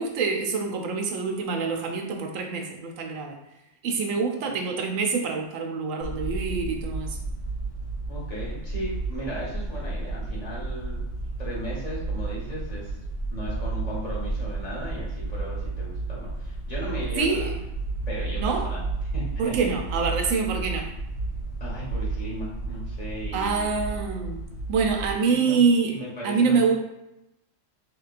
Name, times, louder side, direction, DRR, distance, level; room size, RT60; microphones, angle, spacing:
voice 1, 0.0-3.4 3.8-7.2 17.2-17.5 18.3-18.7 19.4-20.9 23.3-25.9 26.2-26.7, right 5 dB, 85° right, 2 dB, 1.0 m, -26 dB
sound 1, 6.0-25.1, right 3 dB, 60° left, 1.8 m, -32 dB
voice 2, 8.1-11.0 11.4-12.9 13.3-17.6 18.1-18.9 19.1-19.7 21.6-23.9 25.3-26.7, equal, 35° left, -6 dB, 1.2 m, -36 dB
3.5 x 3.0 x 2.4 m, 0.89 s
omnidirectional pair, 1.3 m